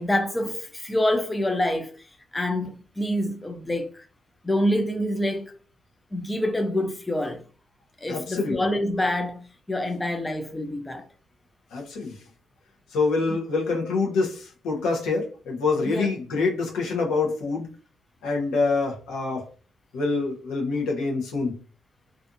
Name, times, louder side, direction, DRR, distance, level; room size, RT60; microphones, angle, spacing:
voice 1, 0.0-2.0 2.3-4.0 4.4-5.5 6.1-7.4 8.0-11.0 15.9-16.1, left 1 dB, 15° left, 0.4 m, -26 dB
voice 2, 8.1-8.6 11.7-12.2 12.9-17.7 18.2-19.5 19.9-21.6, left 3 dB, 85° left, 0.8 m, -26 dB
2.4 x 2.4 x 2.5 m
cardioid pair, 90°, 0 cm